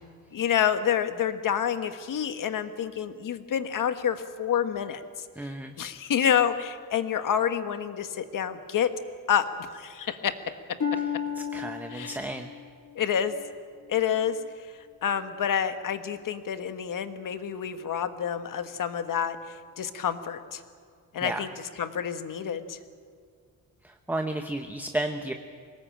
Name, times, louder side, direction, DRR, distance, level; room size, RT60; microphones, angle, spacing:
voice 1, 0.3-5.0 5.4-5.5 5.8-8.9 9.3-9.5 9.7-10.4 11.9-12.2 12.9-13.3 13.9-14.4 15.0-20.6 21.1-21.5 21.8-22.8, left 8 dB, 70° left, 9 dB, 1.5 m, -28 dB
voice 2, 5.4-5.7 11.0-11.1 11.4-12.5 21.2-21.5 23.8-25.3, right 1 dB, 5° right, 5 dB, 0.9 m, -33 dB
Harp, 10.8-14.5 15.1-15.5 16.1-16.2, left 7 dB, 55° left, 2.4 m, -35 dB
23.5 x 19.0 x 8.9 m, 2.1 s
wide cardioid pair, 135°, 33 cm